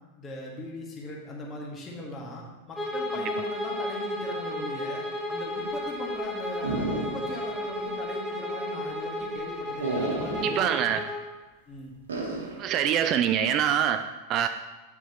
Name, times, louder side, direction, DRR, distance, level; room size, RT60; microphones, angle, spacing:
voice 1, 0.2-10.7 11.7-11.9, left 1 dB, 25° left, -2 dB, 1.8 m, -39 dB
Bowed string instrument, 2.7-11.3, left 1 dB, 5° left, 1.3 m, -33 dB
sound 1, 6.6-7.5 7.8-7.9 9.8-10.6 12.1-12.6, right 2 dB, 70° right, 1.5 m, -31 dB
voice 2, 10.4-11.0 12.6-14.5, right 9 dB, 35° right, 9 dB, 0.3 m, -25 dB
8.7 x 6.9 x 3.0 m, 1.2 s
figure-of-eight pair, 90°, 0 cm